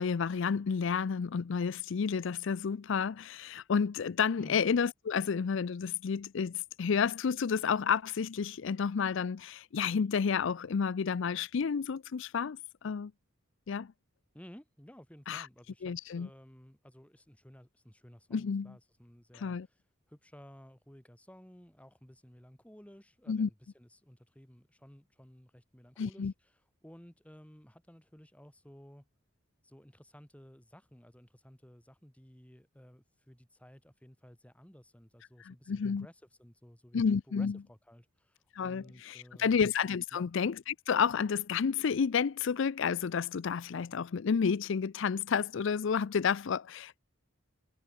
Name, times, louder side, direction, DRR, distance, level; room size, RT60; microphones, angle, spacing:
voice 1, 0.0-13.1 13.7-13.9 15.3-15.5 15.8-16.3 18.3-18.7 19.3-19.7 23.3-23.5 26.0-26.3 35.4-36.1 36.9-37.6 38.5-47.0, left 6 dB, 60° left, 0.4 m, -31 dB
voice 2, 14.3-19.8 20.1-29.1 29.6-39.7 40.1-40.3, equal, 5° left, 2.0 m, -55 dB
head